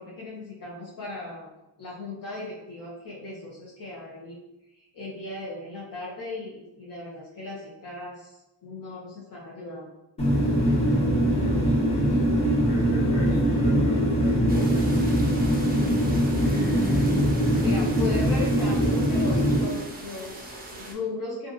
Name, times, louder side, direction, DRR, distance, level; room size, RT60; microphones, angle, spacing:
voice 1, 0.0-1.5 1.8-4.4 4.9-9.9 17.6-21.5, left 2 dB, 50° left, -5 dB, 0.7 m, -37 dB
sound 1, 10.2-19.6, equal, 15° left, 0.8 m, -22 dB
voice 2, 11.3-11.7 12.6-14.9 15.8-17.8, left 2 dB, 75° left, -4 dB, 1.0 m, -36 dB
sound 2, 14.5-20.9, right 2 dB, 25° right, 0.4 m, -41 dB
2.6 x 2.3 x 2.5 m, 0.93 s
cardioid pair, 120°, 42 cm